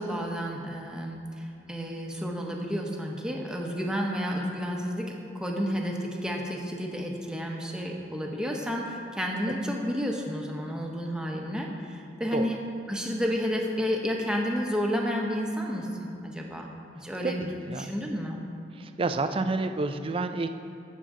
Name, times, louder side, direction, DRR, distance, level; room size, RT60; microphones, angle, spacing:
voice 1, 0.0-12.6 12.9-17.4 17.8-18.4, equal, 5° right, -1 dB, 1.0 m, -31 dB
voice 2, 17.2-17.9 18.8-20.5, right 3 dB, 30° right, 8 dB, 0.4 m, -29 dB
15.5 x 6.6 x 3.7 m, 2.7 s
head